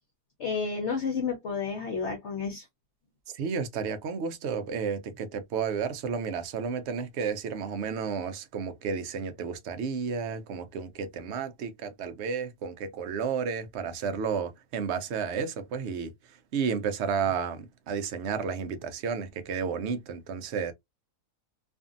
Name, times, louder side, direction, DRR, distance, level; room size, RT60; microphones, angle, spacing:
voice 1, 0.4-2.6, left 5 dB, 55° left, 0.9 m, -31 dB
voice 2, 3.3-20.7, right 6 dB, 70° right, 0.6 m, -32 dB
2.6 x 2.5 x 2.4 m
omnidirectional pair, 1.7 m